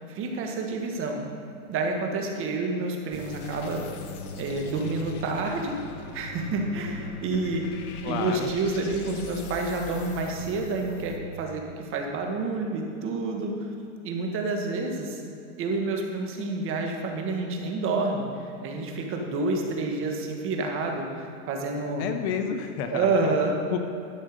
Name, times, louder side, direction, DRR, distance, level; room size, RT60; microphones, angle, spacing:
voice 1, 0.1-1.3 1.7-3.8 4.4-5.8 6.1-7.8 8.0-13.6 14.0-15.2 15.6-22.1 22.9-23.6, right 3 dB, 30° right, 2 dB, 1.3 m, -29 dB
sound 1, 3.1-11.2, left 3 dB, 80° left, 1.2 m, -40 dB
voice 2, 8.0-8.5 22.0-23.3 23.7-23.8, left 7 dB, 45° left, 7 dB, 0.8 m, -30 dB
11.5 x 6.4 x 5.1 m, 2.6 s
supercardioid pair, 145°, 44 cm